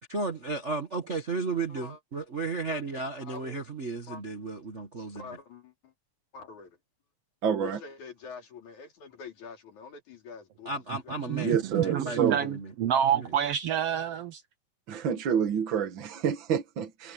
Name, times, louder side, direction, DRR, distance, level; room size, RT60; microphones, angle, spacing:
voice 1, 0.1-5.2 10.6-12.7 13.1-13.3, right 3 dB, 35° right, 1.3 m, -34 dB
voice 2, 1.5-2.0 2.7-2.8 3.2-3.7 4.1-4.2 5.1-5.9 6.3-6.8 7.6-11.3, left 5 dB, 80° left, 4.8 m, -46 dB
voice 3, 7.4-7.8 11.4-12.4 14.9-17.1, right 7 dB, 50° right, 1.8 m, -28 dB
voice 4, 11.7-12.5 12.8-14.4, right 9 dB, 70° right, 1.5 m, -27 dB
omnidirectional pair, 3.3 m